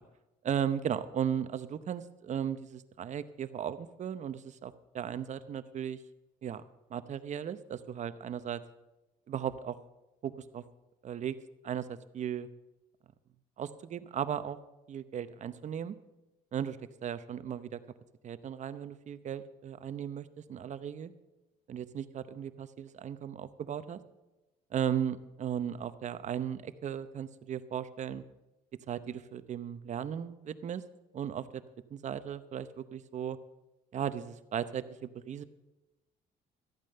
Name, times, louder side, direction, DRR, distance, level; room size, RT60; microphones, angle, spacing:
voice 1, 0.4-6.0 6.4-6.6 6.9-8.6 9.3-9.8 10.2-10.6 11.0-11.4 11.6-12.5 13.6-14.6 14.9-16.0 16.5-16.8 17.0-17.8 18.2-21.1 21.7-24.0 24.7-28.2 28.9-30.8 31.1-31.6 31.9-33.4 33.9-35.4, right 9 dB, 45° right, 13 dB, 0.8 m, -36 dB
13.5 x 8.9 x 6.7 m, 1.0 s
cardioid pair, 110°, 17 cm